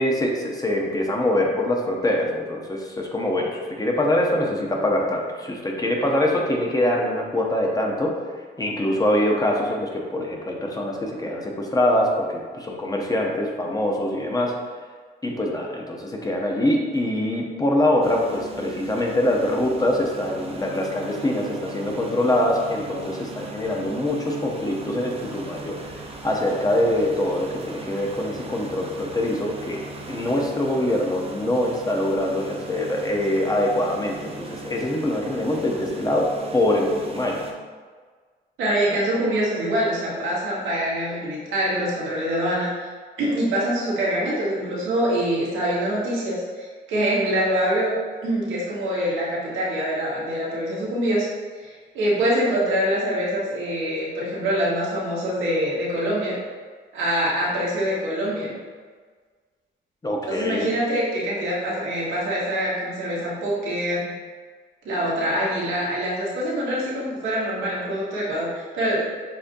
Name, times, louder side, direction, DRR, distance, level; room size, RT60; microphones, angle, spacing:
voice 1, 0.0-8.2 8.6-14.5 15.2-25.8 26.2-29.8 30.1-37.4 60.0-60.7, left 1 dB, 20° left, 0 dB, 0.7 m, -24 dB
sound 1, 18.0-37.5, right 3 dB, 30° right, 0.7 m, -39 dB
voice 2, 38.6-42.7 43.2-47.9 48.2-51.3 51.6-56.4 56.9-58.5 60.3-64.1 64.8-69.0, equal, 90° right, -6 dB, 1.4 m, -24 dB
6.8 x 2.6 x 2.6 m, 1.5 s
cardioid pair, 90°, 20 cm